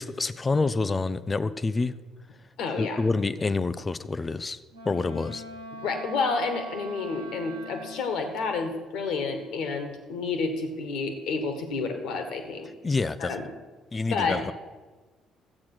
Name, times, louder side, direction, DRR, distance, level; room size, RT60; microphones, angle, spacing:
voice 1, 0.0-1.9 2.8-4.6 4.8-5.4 12.8-13.5 13.9-14.5, left 3 dB, 25° left, 15 dB, 0.6 m, -27 dB
voice 2, 2.6-3.0 5.7-12.7 13.2-13.5 14.1-14.4, left 4 dB, 55° left, 6 dB, 1.8 m, -30 dB
Wind instrument woodwind instrument, 4.7-8.2, equal, 80° right, 1.5 m, -42 dB
13.0 x 8.7 x 6.1 m, 1.3 s
figure-of-eight pair, 50°, 0 cm